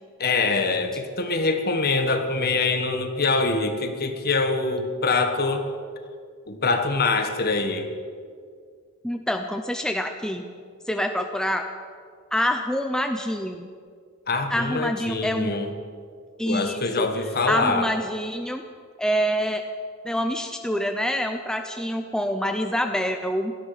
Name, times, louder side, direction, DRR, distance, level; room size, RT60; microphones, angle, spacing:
voice 1, 0.2-5.7 6.5-7.9 14.3-15.7 16.4-17.9, left 3 dB, 45° left, 6 dB, 1.4 m, -24 dB
voice 2, 9.0-10.4 10.9-11.7 12.3-13.7 14.5-15.5 16.4-17.1 17.5-18.6 19.0-19.6 20.0-23.5, equal, 5° left, 5 dB, 0.6 m, -26 dB
17.5 x 13.5 x 5.7 m, 2.1 s
head